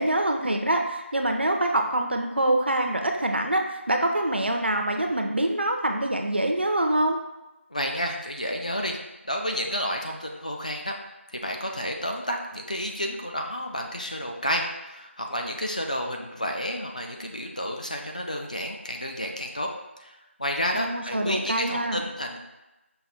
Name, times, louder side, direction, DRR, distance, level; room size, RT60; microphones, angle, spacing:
voice 1, 0.0-7.2 20.7-22.0, right 1 dB, 55° right, 4 dB, 0.5 m, -25 dB
voice 2, 7.7-9.0 9.3-10.9 11.3-19.7 20.0-22.4, equal, 35° left, 2 dB, 0.4 m, -30 dB
5.6 x 2.2 x 4.1 m, 1.0 s
figure-of-eight pair, 175°, 7 cm